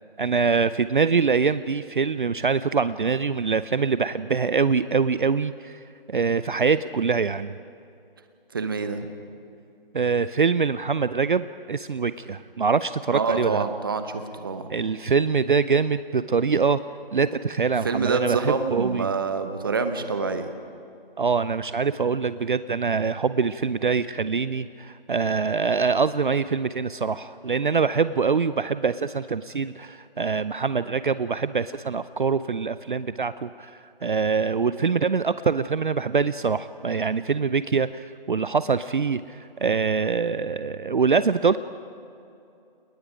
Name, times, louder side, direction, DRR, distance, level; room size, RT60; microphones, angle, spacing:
voice 1, 0.2-5.8 6.1-7.6 9.9-13.6 14.7-16.8 17.1-19.1 21.2-41.6, right 5 dB, 55° right, 14 dB, 0.6 m, -24 dB
voice 2, 8.5-9.1 13.1-14.7 17.8-20.5, right 4 dB, 25° right, 8 dB, 0.9 m, -26 dB
29.5 x 19.5 x 5.1 m, 2.6 s
figure-of-eight pair, 165°, 30 cm